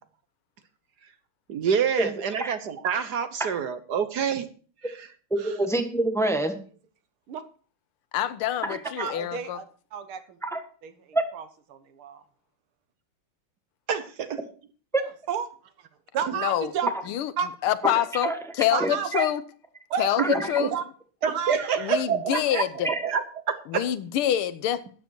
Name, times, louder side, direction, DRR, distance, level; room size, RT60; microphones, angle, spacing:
voice 1, 1.5-4.5 4.8-5.1 13.9-14.4 16.3-16.4 20.6-20.7 21.2-22.6 23.0-23.9, right 7 dB, 60° right, 1.4 m, -27 dB
voice 2, 5.3-6.6 8.6-8.8 10.4-10.6 11.1-11.2 14.9-15.0 17.8-17.9 18.2-18.4 18.8-19.3 20.2-20.6 22.8-23.0, right 2 dB, ahead, 1.0 m, -26 dB
voice 3, 8.1-9.6 16.3-16.7 17.1-17.3 17.6-19.4 20.0-20.7 21.8-22.9 23.7-24.8, left 11 dB, 85° left, 1.7 m, -26 dB
voice 4, 9.0-9.7 9.9-10.4 10.8-11.5 11.7-12.2 15.3-15.5 15.8-15.9 16.1-16.9 17.4-17.5 18.7-19.3 19.9-20.2 20.7-20.8 21.2-21.6, right 7 dB, 85° right, 2.1 m, -31 dB
13.0 x 9.4 x 4.6 m
omnidirectional pair, 2.3 m